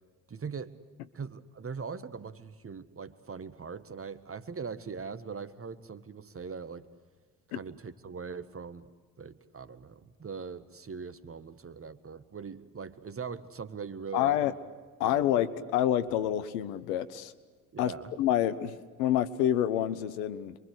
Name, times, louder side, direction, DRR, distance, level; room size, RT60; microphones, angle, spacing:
voice 1, 0.3-0.7 1.1-6.8 7.5-8.9 9.2-14.5 15.0-15.3 17.7-18.1, right 5 dB, 30° right, 13 dB, 1.7 m, -41 dB
voice 2, 14.1-14.5 15.0-17.3 17.8-17.9 18.2-20.6, left 11 dB, 75° left, 14 dB, 1.3 m, -28 dB
28.0 x 24.0 x 8.1 m, 1.4 s
hypercardioid pair, 55°, 46 cm